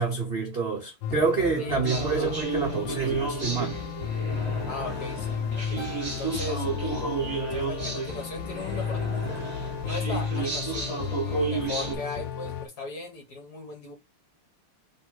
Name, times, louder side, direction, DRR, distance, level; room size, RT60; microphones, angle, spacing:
voice 1, 0.0-3.8, right 4 dB, 70° right, 0.5 m, -27 dB
sound 1, 1.0-12.7, left 7 dB, 70° left, 1.2 m, -33 dB
voice 2, 1.6-2.4 4.6-9.4 9.8-13.9, left 2 dB, 50° left, 1.8 m, -38 dB
sound 2, 1.8-12.0, right 4 dB, 20° right, 1.8 m, -32 dB
Keyboard (musical), 5.8-8.3, right 7 dB, 10° left, 2.1 m, -50 dB
3.5 x 3.2 x 4.6 m
omnidirectional pair, 2.4 m